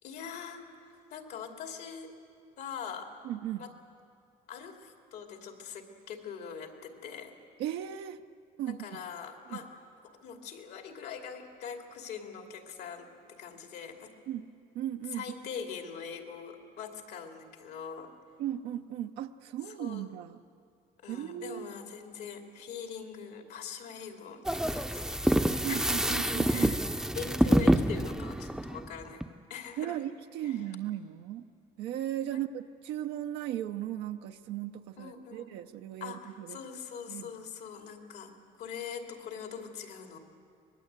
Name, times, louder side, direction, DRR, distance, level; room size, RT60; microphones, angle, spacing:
voice 1, 0.0-2.2 2.6-3.1 3.6-3.7 4.5-7.3 8.7-9.8 10.0-14.1 15.1-18.1 19.6-20.1 21.0-26.8 27.1-29.2 29.5-30.0 30.4-30.6 32.3-32.4 35.0-35.5 36.0-38.3 38.6-40.2, left 6 dB, 75° left, 3 dB, 2.7 m, -42 dB
voice 2, 3.2-3.6 7.6-8.2 8.6-9.0 9.5-9.6 14.3-14.5 14.7-15.2 18.4-20.4 21.1-21.7 25.6-26.8 29.8-31.5 31.8-36.6 37.1-37.3, right 11 dB, 90° right, 5 dB, 0.8 m, -36 dB
sound 1, 24.4-29.3, right 1 dB, 5° right, 0.6 m, -27 dB
25.5 x 20.0 x 8.2 m, 2.4 s
cardioid pair, 110°, 17 cm